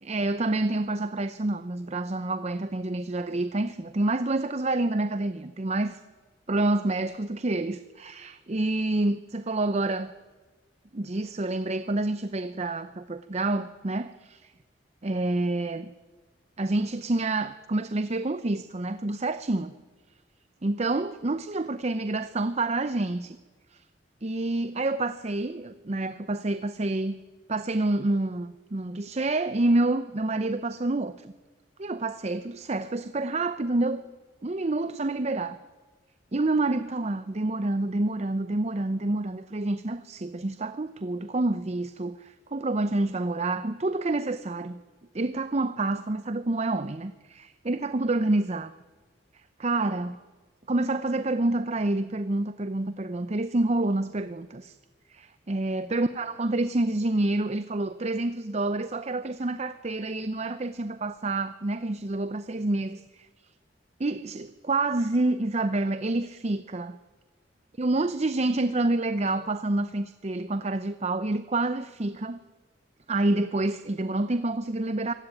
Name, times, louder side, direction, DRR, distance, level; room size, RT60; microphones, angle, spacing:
voice 1, 0.0-5.9 6.5-10.1 10.9-14.5 15.0-15.9 16.6-19.8 20.6-23.4 23.7-23.8 24.2-27.2 27.5-31.3 31.8-34.0 34.4-35.6 36.3-44.8 45.1-48.7 49.6-50.2 50.7-54.8 55.1-63.3 64.0-67.0 67.8-72.4 73.1-75.1, right 2 dB, 35° right, 12 dB, 0.7 m, -28 dB
24.5 x 16.5 x 9.2 m, 1.3 s
head